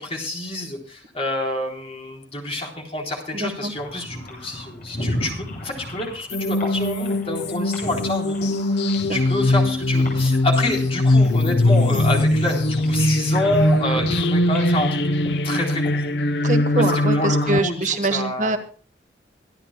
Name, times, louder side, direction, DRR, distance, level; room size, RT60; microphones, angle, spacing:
voice 1, 0.0-15.1 15.4-16.1 16.8-16.9 17.1-18.6, left 2 dB, 35° left, 0 dB, 3.8 m, -28 dB
voice 2, 3.3-3.7 9.1-9.2 11.9-12.1 16.4-18.6, right 2 dB, 45° right, 7 dB, 1.3 m, -24 dB
sound 1, 3.7-16.1, left 1 dB, 50° left, 7.5 m, -36 dB
sound 2, 6.3-17.6, left 1 dB, 75° left, 0.9 m, -21 dB
25.0 x 11.0 x 2.2 m, 0.42 s
head